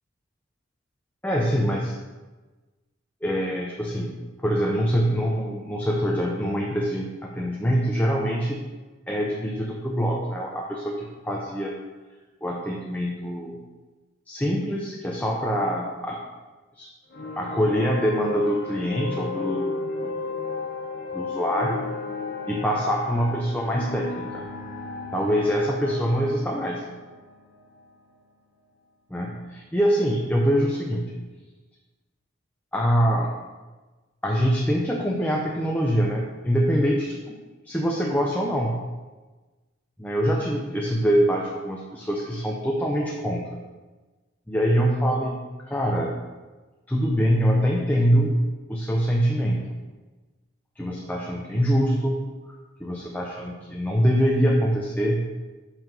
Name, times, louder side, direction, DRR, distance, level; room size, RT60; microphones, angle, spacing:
voice 1, 1.2-2.0 3.2-4.2 4.4-8.6 9.1-11.8 12.4-13.6 14.3-16.2 16.7-16.9 17.4-19.7 20.0-20.2 21.1-21.8 22.5-24.4 25.1-26.8 29.1-31.1 32.7-33.3 34.2-37.4 37.6-38.8 40.0-43.6 44.5-46.2 46.9-48.4 48.7-49.8 50.8-52.2 52.8-55.2, equal, 10° left, -2 dB, 0.6 m, -24 dB
sound 1, 17.1-28.4, left 4 dB, 50° left, 1.0 m, -34 dB
5.7 x 5.4 x 5.3 m, 1.2 s
head